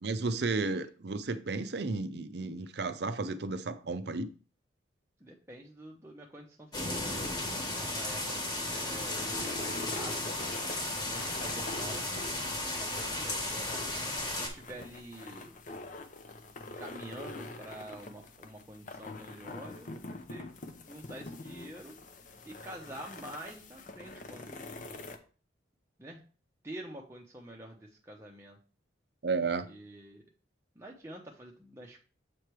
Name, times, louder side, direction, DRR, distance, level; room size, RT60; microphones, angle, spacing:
voice 1, 0.0-4.3 29.2-29.7, right 3 dB, 60° right, 0.5 m, -33 dB
voice 2, 5.2-10.6 11.0-13.8 14.3-15.5 16.6-20.6 20.9-22.0 22.4-25.1 26.0-26.2 26.6-28.6 29.7-30.2 30.8-32.0, right 1 dB, 15° right, 0.7 m, -47 dB
sound 1, 6.7-14.5, left 1 dB, 20° left, 1.3 m, -35 dB
sound 2, 8.3-25.2, left 2 dB, 40° left, 0.6 m, -45 dB
7.6 x 3.3 x 4.5 m
head